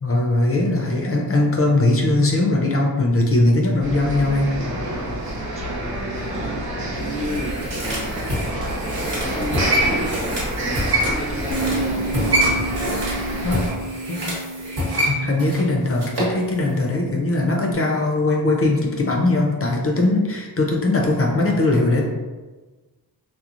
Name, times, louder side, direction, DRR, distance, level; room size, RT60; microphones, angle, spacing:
voice 1, 0.0-4.5 13.4-13.6 14.1-14.3 14.9-22.0, left 2 dB, 35° left, 0 dB, 0.5 m, -20 dB
sound 1, 3.8-13.7, right 1 dB, 65° right, 0.8 m, -27 dB
voice 2, 5.5-5.9 6.3-8.7 9.2-10.3 11.0-12.7 13.2-13.4, left 1 dB, 15° right, -2 dB, 0.5 m, -34 dB
sound 2, 7.0-16.4 16.7-16.8, right 1 dB, 85° right, 1.1 m, -26 dB
Bass guitar, 11.5-17.8, right 2 dB, 90° left, 0.6 m, -32 dB
2.9 x 2.0 x 2.5 m, 1.2 s
wide cardioid pair, 85°, 40 cm